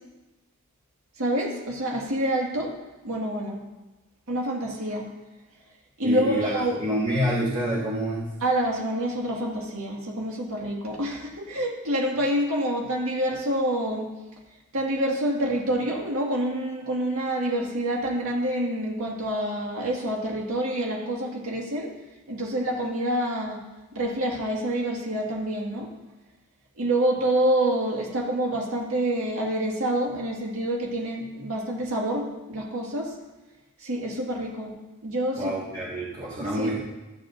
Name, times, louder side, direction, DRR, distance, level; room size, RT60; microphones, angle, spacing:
voice 1, 1.2-2.7 3.0-3.6 4.3-5.0 6.0-6.8 8.4-14.1 14.7-21.9 22.3-23.6 23.9-25.9 26.8-33.1 33.8-34.7 35.0-35.5 36.4-36.7, right 1 dB, 70° right, -2 dB, 1.9 m, -27 dB
voice 2, 6.0-6.5 6.8-8.3 35.3-36.8, equal, 35° right, -7 dB, 1.8 m, -27 dB
14.5 x 7.5 x 2.6 m, 1.1 s
head